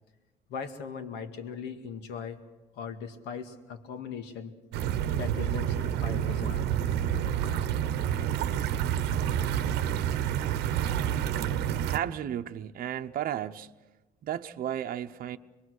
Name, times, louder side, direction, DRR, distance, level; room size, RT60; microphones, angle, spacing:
voice 1, 0.5-2.4 2.7-4.5 5.2-6.6, left 6 dB, 85° left, 2.0 m, -39 dB
sound 1, 4.7-12.0, right 10 dB, 85° right, 0.9 m, -28 dB
voice 2, 11.9-13.7 14.2-15.4, right 11 dB, 55° right, 0.8 m, -33 dB
26.0 x 21.5 x 6.4 m
cardioid pair, 110°, 17 cm